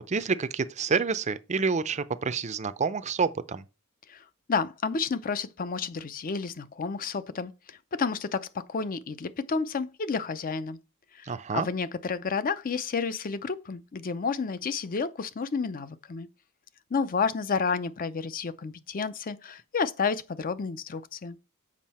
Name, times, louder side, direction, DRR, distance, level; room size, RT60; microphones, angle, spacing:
voice 1, 0.1-3.6 11.2-11.7, right 5 dB, 30° right, 0.5 m, -28 dB
voice 2, 4.1-10.8 11.1-16.3 16.9-21.4, left 5 dB, 40° left, 0.5 m, -31 dB
7.4 x 5.4 x 4.2 m
head